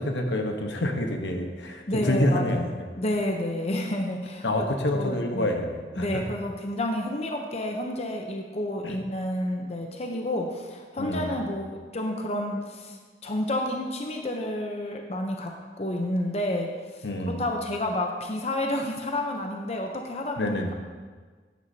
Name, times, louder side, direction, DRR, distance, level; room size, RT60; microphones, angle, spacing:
voice 1, 0.0-2.8 4.4-6.1 8.8-9.0 11.0-11.4 17.0-17.4 20.4-20.7, left 1 dB, 80° left, 3 dB, 1.1 m, -27 dB
voice 2, 1.9-2.7 2.9-4.7 4.9-5.5 6.0-20.7, left 1 dB, 35° left, 3 dB, 0.7 m, -30 dB
11.5 x 9.4 x 2.8 m, 1.5 s
head